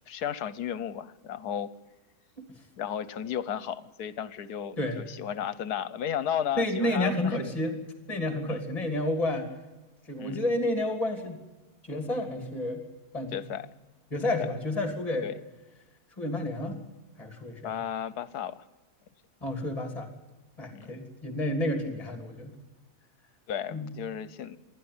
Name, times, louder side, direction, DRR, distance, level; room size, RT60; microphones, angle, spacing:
voice 1, 0.1-1.7 2.8-7.4 8.5-8.6 10.2-10.4 13.3-13.7 14.2-14.3 15.2-15.3 17.6-18.6 20.7-20.9 23.5-24.6, left 9 dB, 75° left, 16 dB, 1.4 m, -34 dB
voice 2, 6.6-7.8 8.1-9.5 10.1-11.4 11.9-12.8 13.1-13.4 14.1-15.3 16.2-16.8 17.2-17.7 19.4-20.1 20.6-22.5 23.7-23.9, left 1 dB, 20° left, 4 dB, 3.1 m, -30 dB
27.5 x 11.5 x 9.7 m, 1.1 s
omnidirectional pair, 1.7 m